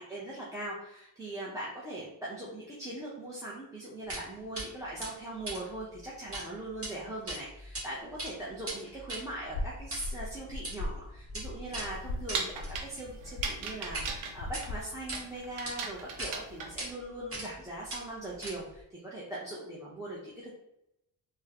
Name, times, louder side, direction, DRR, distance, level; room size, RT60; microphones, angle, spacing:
voice 1, 0.0-20.5, right 1 dB, 5° right, -7 dB, 0.6 m, -40 dB
sound 1, 4.1-4.3 4.6-4.7 5.0-6.5 6.7-6.9 7.3-7.8 8.1-14.1 14.4-15.2 15.7-15.8 16.2-16.3 16.8-16.9 17.3-17.6 17.9-18.8, right 1 dB, 25° right, 1.4 m, -40 dB
sound 2, 9.4-14.8, left 2 dB, 50° left, 0.5 m, -40 dB
sound 3, 11.7-16.9, right 5 dB, 85° right, 0.7 m, -38 dB
3.5 x 2.1 x 2.8 m, 0.84 s
cardioid pair, 85°, 49 cm